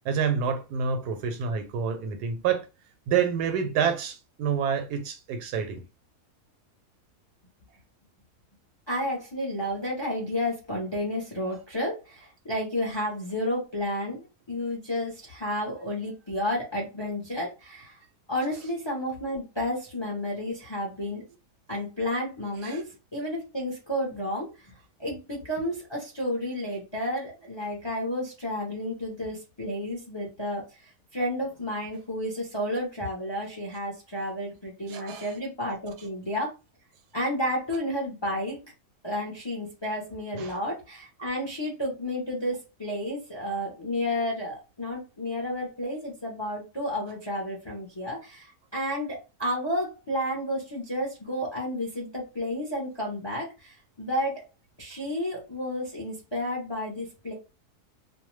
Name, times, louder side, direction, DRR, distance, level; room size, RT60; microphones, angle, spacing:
voice 1, 0.0-2.7 3.1-5.8 22.6-22.8 34.9-35.3 40.3-40.5, right 7 dB, 90° right, 1.2 m, -28 dB
voice 2, 8.9-18.0 18.3-21.2 21.7-24.7 25.0-30.8 31.1-36.5 37.1-38.6 39.0-54.5 54.8-57.3, left 1 dB, 40° left, 0.4 m, -31 dB
2.6 x 2.1 x 3.1 m
omnidirectional pair, 1.7 m